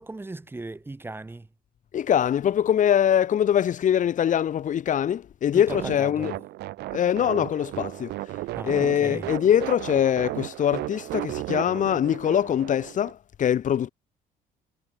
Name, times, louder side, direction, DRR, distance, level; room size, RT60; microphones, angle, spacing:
voice 1, 0.0-1.5 5.5-6.4 8.6-9.3, right 2 dB, 15° right, 2.5 m, -37 dB
voice 2, 1.9-6.3 6.9-8.1 8.6-13.9, left 9 dB, 50° left, 1.7 m, -23 dB
sound 1, 5.7-13.1, right 17 dB, 80° right, 3.2 m, -35 dB
cardioid pair, 110°, 17 cm